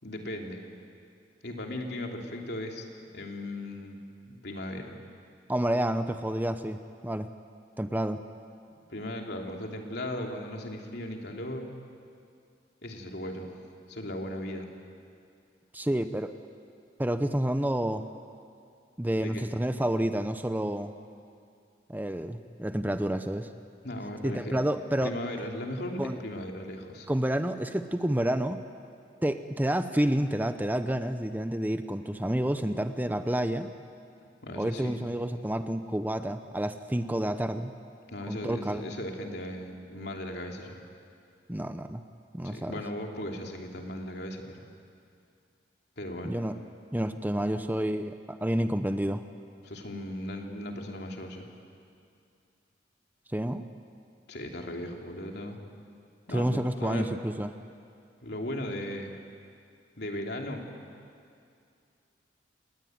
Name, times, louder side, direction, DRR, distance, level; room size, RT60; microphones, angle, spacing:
voice 1, 0.0-0.6 1.4-2.9 3.1-4.0 4.3-5.0 8.7-11.7 12.8-13.6 13.9-14.7 19.2-19.5 23.8-24.6 25.0-27.1 34.4-35.0 38.1-40.8 42.4-44.6 46.0-46.4 49.6-51.5 54.3-55.6 56.3-57.1 58.2-59.2 60.0-60.7, left 1 dB, 65° left, 2 dB, 3.1 m, -37 dB
voice 2, 5.5-7.3 7.8-8.2 15.7-16.3 17.0-18.1 19.0-20.9 21.9-23.5 24.2-25.1 26.0-26.2 27.1-28.6 29.2-33.7 34.6-37.7 38.3-38.8 41.5-42.0 42.3-42.7 46.2-46.5 46.9-49.2 53.3-53.7 56.3-57.5, right 1 dB, 10° right, 9 dB, 0.7 m, -29 dB
28.5 x 19.5 x 9.4 m, 2.4 s
head